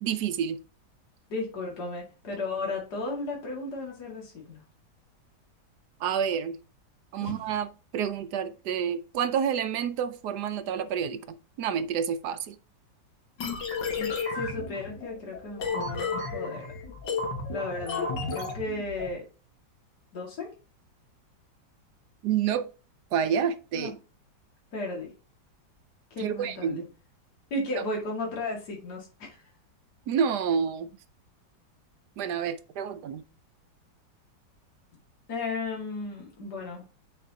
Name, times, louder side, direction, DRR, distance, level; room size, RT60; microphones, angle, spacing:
voice 1, 0.0-0.6 6.0-6.6 7.1-12.6 22.2-22.7 23.1-23.9 26.2-26.8 27.8-27.9 30.1-30.9 32.2-33.2, right 8 dB, 70° right, 1.2 m, -29 dB
voice 2, 1.3-4.6 7.2-7.3 14.0-16.7 17.5-19.2 20.1-20.5 23.7-23.9 24.7-25.1 26.1-26.8 27.5-29.4 35.3-36.8, left 2 dB, 60° left, 2.6 m, -34 dB
sound 1, 13.4-19.1, left 4 dB, 75° left, 2.2 m, -33 dB
9.4 x 5.2 x 2.8 m
omnidirectional pair, 2.0 m